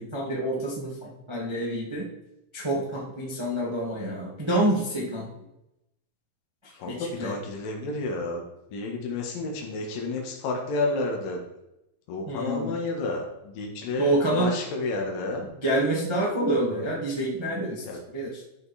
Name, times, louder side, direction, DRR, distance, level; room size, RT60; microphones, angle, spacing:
voice 1, 0.0-2.1 2.5-5.3 6.9-7.4 12.3-12.7 14.0-14.5 15.6-17.8 18.1-18.4, right 1 dB, 15° right, -4 dB, 1.1 m, -27 dB
voice 2, 6.8-8.4 8.7-11.4 12.1-15.5 17.8-18.0, left 2 dB, 75° left, 1 dB, 3.2 m, -30 dB
12.5 x 5.3 x 4.2 m, 0.87 s
omnidirectional pair, 4.0 m